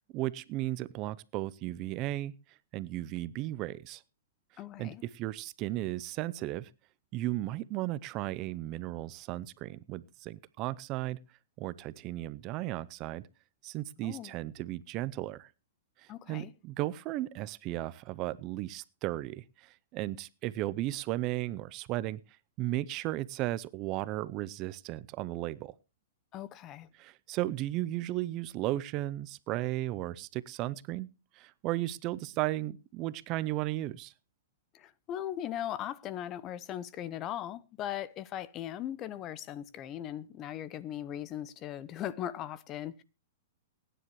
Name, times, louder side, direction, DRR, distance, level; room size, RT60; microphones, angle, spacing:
voice 1, 0.1-2.3 2.7-4.0 4.8-6.7 7.1-11.2 11.6-13.2 13.6-15.5 16.0-22.2 22.6-25.7 27.0-31.1 31.3-34.1, right 16 dB, 35° right, 0.6 m, -35 dB
voice 2, 4.6-5.0 14.0-14.3 16.1-16.5 26.3-26.9 34.7-43.0, left 11 dB, 25° left, 0.8 m, -39 dB
23.0 x 10.0 x 3.1 m
hypercardioid pair, 145°, 0 cm